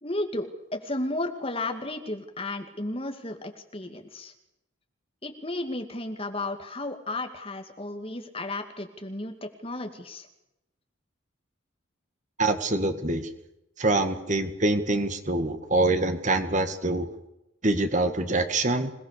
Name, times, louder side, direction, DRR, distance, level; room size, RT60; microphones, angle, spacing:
voice 1, 0.0-4.3 5.2-10.3, left 2 dB, 25° left, 5 dB, 2.5 m, -33 dB
voice 2, 12.4-13.3 13.8-17.1 17.6-18.9, right 2 dB, 35° right, 8 dB, 1.9 m, -25 dB
27.0 x 19.0 x 6.9 m, 0.87 s
head